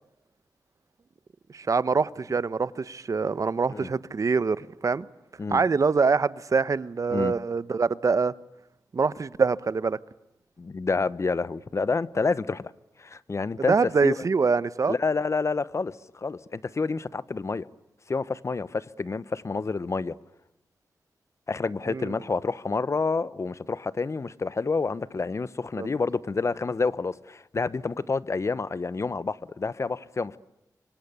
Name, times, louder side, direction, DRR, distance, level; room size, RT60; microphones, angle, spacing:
voice 1, 1.5-5.1 5.5-8.3 8.9-10.0 13.7-15.0 21.9-22.1 25.8-25.9, right 4 dB, 55° right, 1.0 m, -24 dB
voice 2, 10.6-12.7 13.0-13.8 14.0-14.1 14.9-17.7 18.1-20.1 21.5-30.4, left 4 dB, 45° left, 1.0 m, -28 dB
28.0 x 25.0 x 8.3 m
wide cardioid pair, 80°, 7 cm